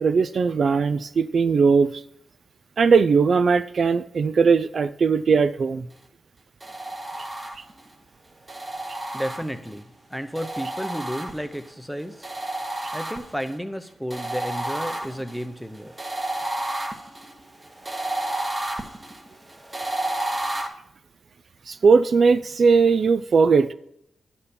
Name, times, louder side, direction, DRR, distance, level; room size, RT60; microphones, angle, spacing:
voice 1, 0.0-2.0 2.8-5.9 21.7-23.7, right 5 dB, 55° right, 13 dB, 0.3 m, -19 dB
sound 1, 6.6-7.9 8.5-9.8 10.3-11.7 12.2-13.5 14.1-20.7, right 1 dB, 15° right, 1.0 m, -31 dB
voice 2, 9.1-12.3 12.9-15.9, equal, ahead, 10 dB, 0.7 m, -32 dB
11.0 x 4.2 x 6.8 m, 0.77 s
wide cardioid pair, 135°, 0 cm